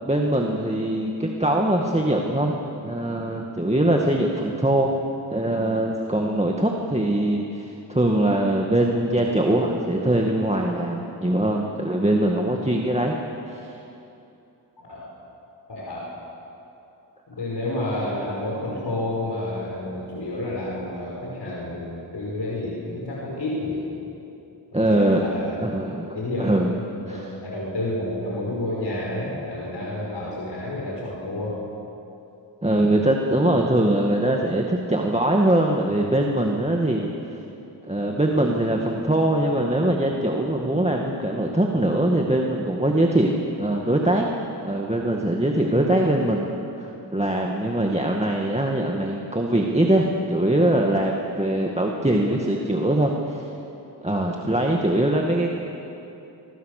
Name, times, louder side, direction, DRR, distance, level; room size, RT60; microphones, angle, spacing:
voice 1, 0.0-2.6 2.8-4.9 5.3-13.2 13.5-13.8 24.7-25.2 25.6-26.8 27.1-27.3 32.6-37.1 37.8-44.3 44.6-46.5 46.8-53.5 54.0-55.5, right 1 dB, 15° right, 0 dB, 2.0 m, -22 dB
voice 2, 14.8-15.1 15.7-16.1 17.3-23.8 24.7-25.6 26.1-26.5 27.0-31.5, left 1 dB, 70° left, -4 dB, 5.5 m, -30 dB
24.5 x 24.0 x 6.7 m, 2.9 s
wide cardioid pair, 65°, 42 cm